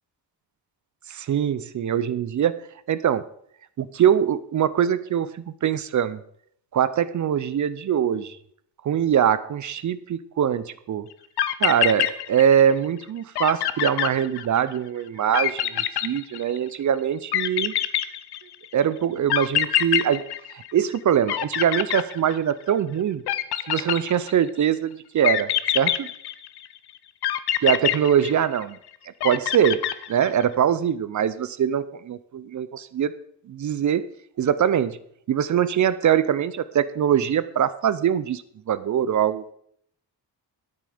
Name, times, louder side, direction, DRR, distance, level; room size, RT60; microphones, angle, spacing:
voice 1, 1.1-2.6 2.9-3.3 3.8-6.2 6.7-8.4 8.8-11.1 11.6-17.7 18.7-20.2 20.5-23.2 23.6-25.5 25.7-26.1 27.6-28.8 29.2-29.8 30.1-33.2 33.5-34.1 34.4-35.0 35.3-39.5, right 9 dB, 45° right, 16 dB, 0.5 m, -23 dB
sound 1, 11.1-11.2 11.4-12.7 13.0-13.1 13.4-14.8 15.3-16.8 17.3-18.7 19.3-21.0 21.3-22.7 23.3-24.5 25.2-26.7 27.2-28.8 29.2-30.4, left 11 dB, 65° left, 0.7 m, -25 dB
12.5 x 9.3 x 4.9 m, 0.69 s
wide cardioid pair, 175°, 43 cm